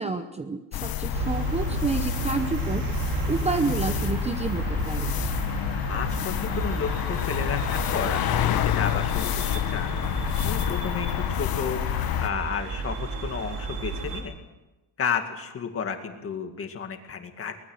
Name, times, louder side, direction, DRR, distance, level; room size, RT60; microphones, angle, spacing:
voice 1, 0.0-2.9 3.3-5.1, right 4 dB, 15° right, 8 dB, 0.7 m, -29 dB
sound 1, 0.7-12.3, left 12 dB, 55° left, 1.1 m, -28 dB
sound 2, 1.1-14.2, right 4 dB, 70° right, 4.4 m, -32 dB
voice 2, 5.9-10.0 10.4-11.8 12.2-14.3 15.0-17.6, left 6 dB, 30° left, 6 dB, 2.1 m, -32 dB
23.0 x 20.0 x 6.4 m, 1.1 s
cardioid pair, 170°, 42 cm